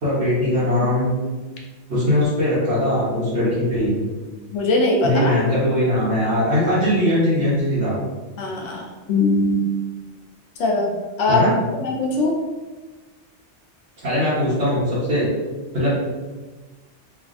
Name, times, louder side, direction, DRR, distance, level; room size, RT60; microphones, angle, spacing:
voice 1, 0.0-1.2 1.9-3.9 5.0-8.0 11.3-11.5 14.0-15.3 15.7-16.0, left 1 dB, 65° right, -12 dB, 1.3 m, -20 dB
voice 2, 4.5-5.3 8.4-8.8 9.1-9.7 10.6-10.9 11.2-11.4 11.8-12.3, left 2 dB, 85° left, 0 dB, 0.9 m, -20 dB
3.3 x 2.4 x 2.4 m, 1.3 s
omnidirectional pair, 1.2 m